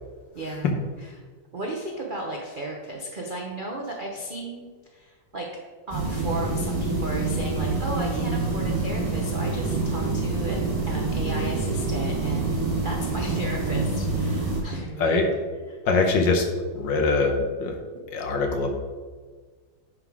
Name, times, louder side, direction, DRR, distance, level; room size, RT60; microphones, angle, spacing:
voice 1, 0.3-0.7 1.0-1.1 1.5-4.6 4.9-5.5 5.9-15.4 15.7-15.8, right 2 dB, 55° right, -1 dB, 0.5 m, -34 dB
sound 1, 5.9-14.6, right 3 dB, 20° right, 1.4 m, -26 dB
voice 2, 15.9-16.4 16.7-17.8 18.1-18.7, left 3 dB, 70° left, 3 dB, 1.7 m, -23 dB
9.9 x 3.9 x 4.8 m, 1.5 s
omnidirectional pair, 2.1 m